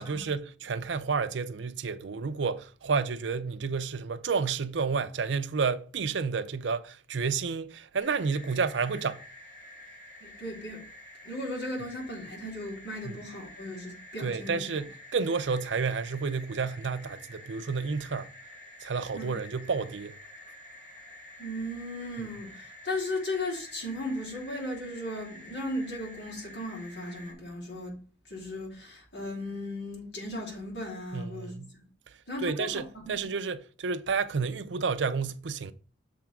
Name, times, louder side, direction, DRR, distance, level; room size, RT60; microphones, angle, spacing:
voice 1, 0.0-9.2 13.0-13.2 14.2-18.3 18.8-20.2 31.1-31.7 32.4-35.7, right 5 dB, 85° right, 0.5 m, -30 dB
sound 1, 8.0-27.3, left 1 dB, 45° left, 3.7 m, -49 dB
voice 2, 10.2-10.8 11.2-14.6 19.1-19.3 21.4-27.9 28.3-31.8 32.3-33.2, left 1 dB, 70° left, 3.4 m, -36 dB
6.8 x 3.6 x 5.9 m
head